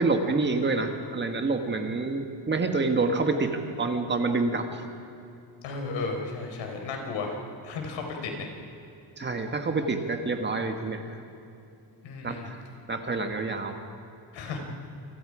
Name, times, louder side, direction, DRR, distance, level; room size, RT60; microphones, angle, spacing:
voice 1, 0.0-4.8 9.2-11.2 12.2-12.6 12.9-13.8, right 3 dB, 25° right, 5 dB, 1.6 m, -27 dB
voice 2, 5.6-7.4 7.6-8.5 12.0-12.5 14.3-14.6, left 4 dB, 85° left, 2 dB, 4.7 m, -34 dB
29.0 x 26.0 x 5.0 m, 2.6 s
cardioid pair, 155°, 44 cm